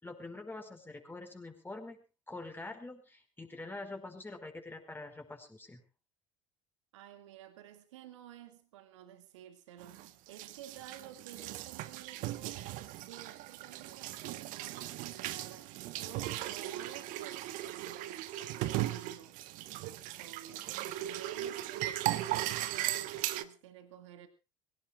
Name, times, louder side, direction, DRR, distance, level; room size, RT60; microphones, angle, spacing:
voice 1, 0.0-5.8, left 2 dB, 15° left, 5 dB, 5.0 m, -45 dB
voice 2, 6.9-19.4 19.8-20.6 21.0-24.3, right 10 dB, 70° right, 9 dB, 2.4 m, -52 dB
sound 1, 9.8-23.4, right 15 dB, 55° right, 1.4 m, -38 dB
23.5 x 17.5 x 2.5 m, 0.31 s
figure-of-eight pair, 65°, 16 cm